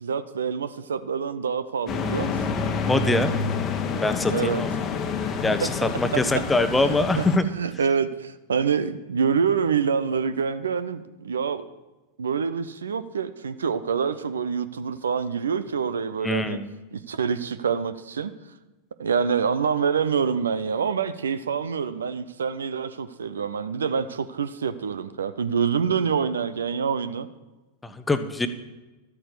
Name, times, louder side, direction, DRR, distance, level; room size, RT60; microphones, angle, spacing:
voice 1, 0.0-2.6 4.3-4.6 5.6-5.7 6.1-6.4 6.8-7.2 7.5-11.7 12.2-16.6 16.9-18.3 19.0-27.3, right 6 dB, 70° right, 14 dB, 0.6 m, -26 dB
sound 1, 1.9-7.4, left 5 dB, 30° left, 1.1 m, -28 dB
voice 2, 2.9-3.3 4.0-4.7 5.4-7.5 16.2-16.7 27.8-28.5, left 2 dB, 10° left, 10 dB, 0.9 m, -23 dB
13.0 x 8.8 x 6.7 m, 1.1 s
figure-of-eight pair, 90°, 0 cm